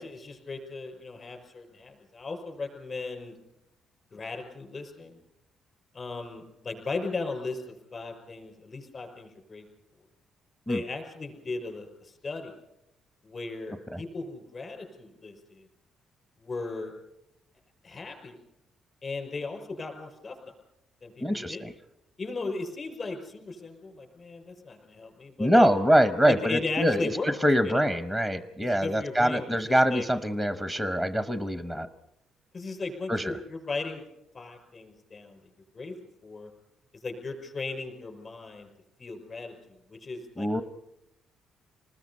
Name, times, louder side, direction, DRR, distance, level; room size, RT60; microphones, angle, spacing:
voice 1, 0.0-3.4 4.1-5.2 5.9-9.6 10.7-12.5 13.2-15.7 16.4-16.9 17.8-18.4 19.0-20.4 21.0-21.7 22.2-25.7 26.3-27.3 27.6-27.9 28.6-30.1 32.5-34.0 34.3-35.4 35.7-35.9 36.2-36.5 37.0-38.7 39.0-40.6, left 3 dB, 30° left, 3 dB, 5.7 m, -37 dB
voice 2, 21.2-21.7 25.4-31.9 33.1-33.4 40.4-40.6, equal, 10° left, 10 dB, 0.9 m, -24 dB
28.0 x 20.0 x 5.5 m, 0.87 s
cardioid pair, 155°, 0 cm